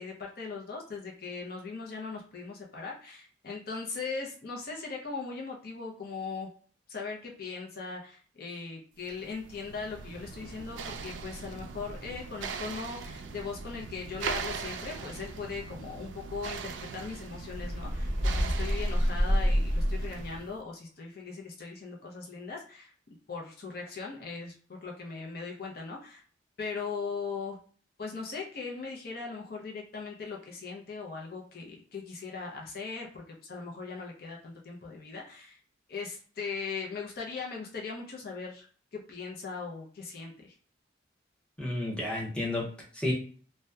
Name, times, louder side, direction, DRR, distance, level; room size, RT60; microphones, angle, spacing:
voice 1, 0.0-6.5 6.9-22.9 23.3-26.2 26.6-27.6 28.0-35.6 35.9-38.7 38.9-40.6, left 4 dB, 50° left, -1 dB, 0.5 m, -39 dB
sound 1, 9.1-20.6, right 5 dB, 75° right, 0.3 m, -40 dB
sound 2, 17.5-20.3, equal, 35° right, 0.7 m, -27 dB
voice 2, 41.6-43.1, left 1 dB, 5° left, -4 dB, 0.6 m, -32 dB
2.7 x 2.1 x 2.2 m, 0.43 s
head